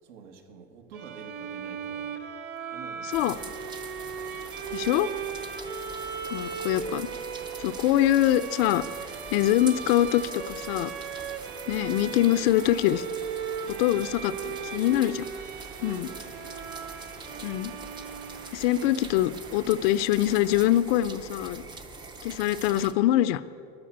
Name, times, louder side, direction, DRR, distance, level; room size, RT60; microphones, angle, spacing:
voice 1, 0.0-2.2 2.6-3.6 11.8-12.5 13.7-14.7 15.7-16.7 18.8-18.9, right 5 dB, 80° right, 5 dB, 2.1 m, -49 dB
Bowed string instrument, 0.9-18.8, right 6 dB, 30° right, 1.1 m, -37 dB
sound 1, 3.1-22.9, right 3 dB, 15° right, 0.5 m, -44 dB
sound 2, 3.3-20.8, right 7 dB, 50° right, 1.6 m, -49 dB
voice 2, 4.7-5.1 6.3-7.1 7.6-8.8 9.3-10.9 11.7-13.0 13.7-15.3 15.8-16.1 17.4-17.7 18.5-21.6 22.2-23.4, left 13 dB, 55° left, 14 dB, 0.5 m, -24 dB
14.0 x 10.5 x 8.7 m, 2.5 s
supercardioid pair, 155°, 36 cm